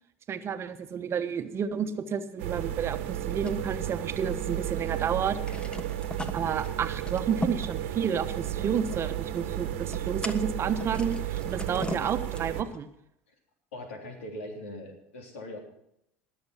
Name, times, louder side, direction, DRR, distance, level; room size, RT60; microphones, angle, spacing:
voice 1, 0.3-5.5 6.3-12.9, right 7 dB, 40° right, 9 dB, 1.2 m, -31 dB
sound 1, 2.4-12.6, right 12 dB, 75° right, 1.3 m, -33 dB
sound 2, 3.5-4.6 4.9-5.0 5.3-12.8, left 1 dB, 15° left, 1.4 m, -40 dB
voice 2, 13.7-15.6, left 1 dB, 80° left, 2 dB, 3.5 m, -41 dB
20.5 x 7.0 x 5.7 m, 0.79 s
hypercardioid pair, 75°, 7 cm